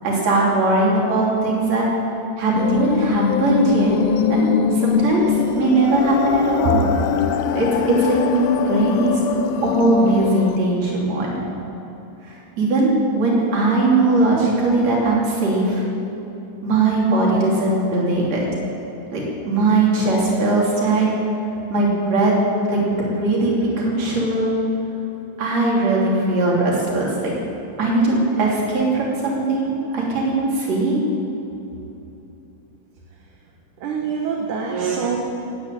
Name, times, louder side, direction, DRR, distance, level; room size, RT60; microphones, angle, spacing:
voice 1, 0.0-1.9 2.4-3.9 4.3-6.9 7.5-9.2 9.6-11.4 12.2-15.8 16.6-18.5 19.1-21.1 21.7-22.4 22.7-24.6 25.4-27.3 27.8-31.0, right 2 dB, 45° right, -4 dB, 4.1 m, -19 dB
sound 1, 2.6-10.6, left 7 dB, 85° left, 2.5 m, -22 dB
voice 2, 33.8-35.2, right 4 dB, 65° right, 0 dB, 2.5 m, -24 dB
16.0 x 9.4 x 9.1 m, 2.9 s
omnidirectional pair, 4.5 m